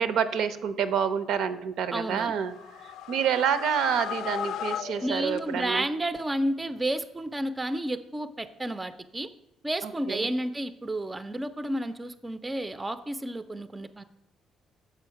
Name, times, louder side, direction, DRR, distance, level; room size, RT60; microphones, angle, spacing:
voice 1, 0.0-2.5 3.1-5.9 9.8-10.4, right 7 dB, 75° right, 12 dB, 0.5 m, -28 dB
voice 2, 1.9-2.3 5.0-9.3 9.6-14.0, right 1 dB, 15° right, 12 dB, 0.4 m, -31 dB
sound 1, 2.2-5.9, left 9 dB, 85° left, 0.4 m, -37 dB
6.9 x 4.9 x 5.7 m, 0.86 s
cardioid pair, 140°, 0 cm